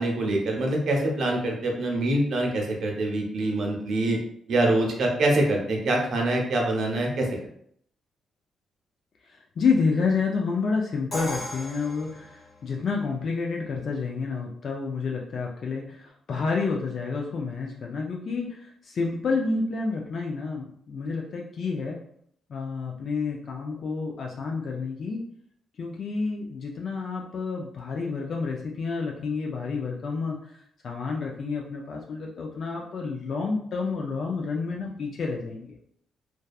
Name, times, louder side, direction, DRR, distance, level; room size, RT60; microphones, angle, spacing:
voice 1, 0.0-4.2 4.5-7.3, right 1 dB, 70° right, 0 dB, 0.7 m, -25 dB
voice 2, 9.6-22.0 22.5-25.2 25.8-30.4 30.8-35.8, left 4 dB, 60° left, 0 dB, 0.4 m, -29 dB
Crash cymbal, 11.1-13.0, equal, 40° left, 1.0 m, -37 dB
2.6 x 2.2 x 2.3 m, 0.67 s
cardioid pair, 70°, 0 cm